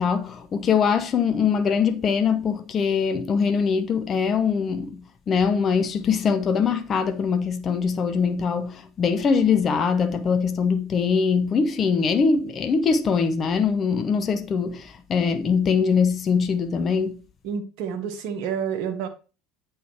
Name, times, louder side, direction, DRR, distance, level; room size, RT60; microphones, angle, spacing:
voice 1, 0.0-17.2, left 6 dB, 35° left, 0.7 m, -22 dB
voice 2, 17.4-19.1, right 7 dB, 60° right, 1.0 m, -29 dB
8.2 x 3.2 x 4.5 m
figure-of-eight pair, 70°, 0 cm